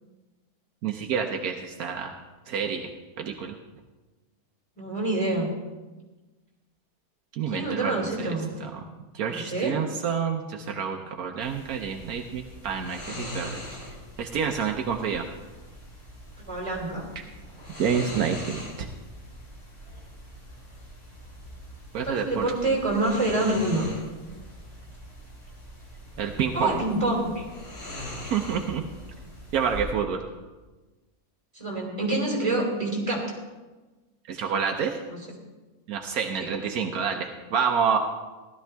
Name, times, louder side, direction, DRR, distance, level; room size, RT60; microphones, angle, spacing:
voice 1, 0.8-2.1 2.5-2.9 3.2-3.5 7.3-8.3 8.6-8.8 9.1-13.6 14.2-15.3 17.8-18.9 21.9-22.4 26.2-26.8 28.1-28.8 29.5-30.2 34.3-35.0 35.9-38.0, right 7 dB, 75° right, 4 dB, 1.2 m, -28 dB
voice 2, 4.8-5.5 7.5-8.5 9.3-9.7 16.5-17.1 22.0-23.9 26.5-27.4 31.5-33.2 35.1-35.2 36.4-36.5, right 2 dB, 20° right, -2 dB, 3.1 m, -27 dB
sound 1, 11.4-29.8, left 1 dB, 80° left, 3.8 m, -42 dB
16.0 x 12.0 x 3.4 m, 1.2 s
omnidirectional pair, 1.6 m